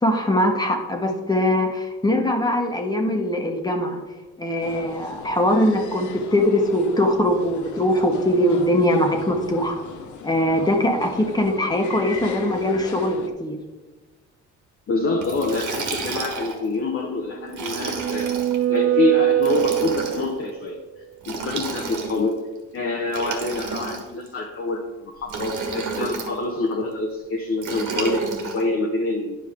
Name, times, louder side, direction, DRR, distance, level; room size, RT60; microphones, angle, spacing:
voice 1, 0.0-4.0 4.4-9.8 10.2-13.6, left 1 dB, 15° left, 2 dB, 1.3 m, -21 dB
sound 1, 4.6-13.3, left 5 dB, 75° left, 0.9 m, -38 dB
voice 2, 14.9-18.3 18.7-20.8 21.3-22.4 22.7-29.4, left 3 dB, 45° left, 1 dB, 0.9 m, -26 dB
Liquid, 15.2-16.7 17.5-18.6 19.4-20.3 21.2-22.3 23.1-24.3 25.3-26.3 27.6-28.6, right 4 dB, 80° right, 1.5 m, -30 dB
sound 2, 17.4-20.5, right 13 dB, 45° right, 0.4 m, -22 dB
10.5 x 5.2 x 3.7 m, 1.2 s
cardioid pair, 90°, 30 cm